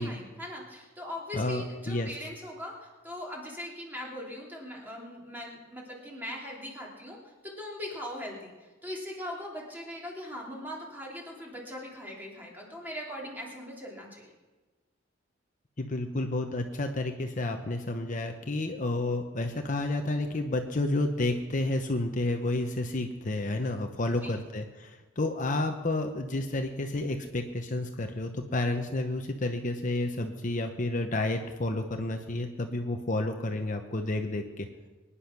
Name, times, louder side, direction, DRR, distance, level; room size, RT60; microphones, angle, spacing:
voice 1, 0.0-14.3 24.2-24.3, left 1 dB, 10° right, -2 dB, 3.0 m, -40 dB
voice 2, 1.3-2.1 15.8-34.7, left 2 dB, 40° left, 5 dB, 0.9 m, -30 dB
23.5 x 10.0 x 6.0 m, 1.3 s
head